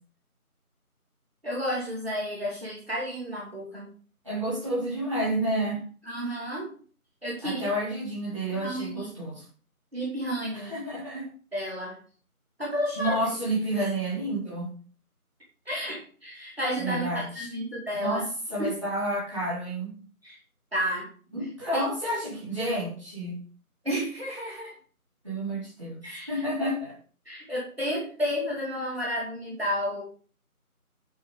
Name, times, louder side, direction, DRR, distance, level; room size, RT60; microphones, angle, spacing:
voice 1, 1.4-3.9 6.0-6.7 7.2-7.7 8.6-9.1 9.9-10.7 11.5-12.0 12.6-13.2 13.8-13.9 15.7-18.2 18.6-18.7 20.2-20.4 20.7-21.1 21.4-21.9 23.8-24.7 26.0-26.3 27.3-30.0, equal, 45° right, -4 dB, 2.7 m, -31 dB
voice 2, 4.2-5.8 7.4-9.4 10.5-11.3 13.0-14.7 16.8-17.5 18.0-18.2 18.5-20.0 21.3-23.4 25.2-27.0, right 1 dB, 20° right, -9 dB, 3.6 m, -30 dB
11.0 x 4.8 x 5.1 m, 0.42 s
figure-of-eight pair, 175°, 44 cm